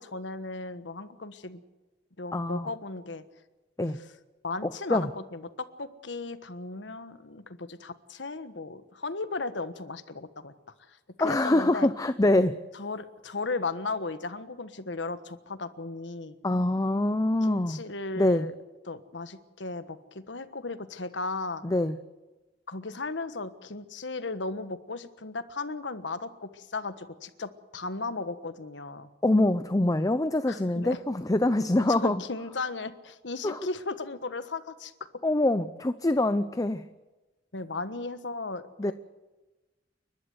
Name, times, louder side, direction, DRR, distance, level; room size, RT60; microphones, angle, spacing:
voice 1, 0.0-1.6 2.2-3.2 3.9-4.1 4.4-10.5 10.9-11.9 12.7-16.4 17.4-18.5 18.9-21.6 22.7-29.1 30.5-31.0 31.7-34.9 37.5-38.9, left 3 dB, 85° left, 11 dB, 1.4 m, -36 dB
voice 2, 2.3-2.7 3.8-4.0 4.9-5.1 11.2-12.6 16.4-17.8 18.2-18.5 21.6-22.0 29.2-32.2 33.4-33.6 35.2-36.8 38.8-38.9, left 1 dB, 20° left, 12 dB, 0.6 m, -24 dB
29.5 x 12.0 x 8.1 m, 1.2 s
head